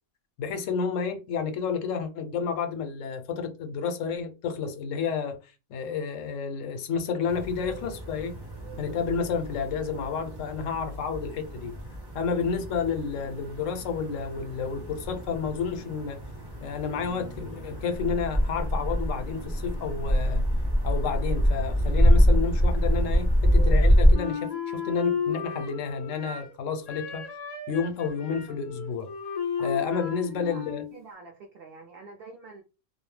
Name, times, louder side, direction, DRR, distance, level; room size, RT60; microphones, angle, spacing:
voice 1, 0.4-5.4 5.7-8.4 8.8-11.7 12.1-16.2 16.6-20.4 20.8-27.2 27.7-29.1 29.6-30.8, left 6 dB, 80° left, 0.9 m, -30 dB
sound 1, 7.3-24.2, equal, 25° right, 0.6 m, -26 dB
Wind instrument woodwind instrument, 24.1-26.6 26.9-30.9, left 7 dB, 60° left, 0.4 m, -34 dB
voice 2, 29.6-30.0 30.3-32.6, right 3 dB, 60° right, 0.6 m, -47 dB
2.3 x 2.0 x 3.1 m
omnidirectional pair, 1.3 m